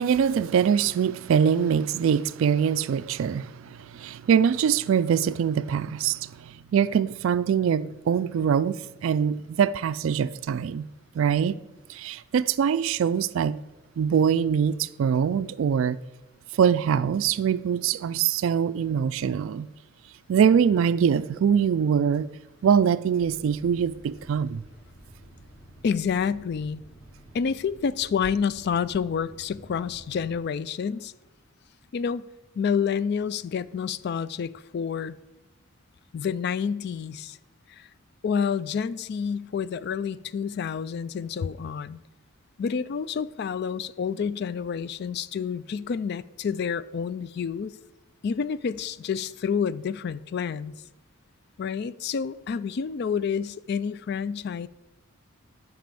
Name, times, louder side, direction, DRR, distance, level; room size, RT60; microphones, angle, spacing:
voice 1, 0.0-10.8 11.1-11.6 11.9-13.6 14.0-16.0 16.5-19.7 20.3-22.3 22.6-24.6, right 7 dB, 65° right, 0.3 m, -23 dB
sound 1, 23.2-30.3, right 1 dB, 10° left, 1.6 m, -51 dB
voice 2, 25.8-26.8 27.3-31.1 31.9-32.2 32.6-35.2 36.1-37.4 37.7-37.9 38.2-42.0 42.6-47.8 48.2-50.7 51.6-54.7, left 6 dB, 50° left, 0.3 m, -29 dB
9.4 x 4.9 x 6.8 m
head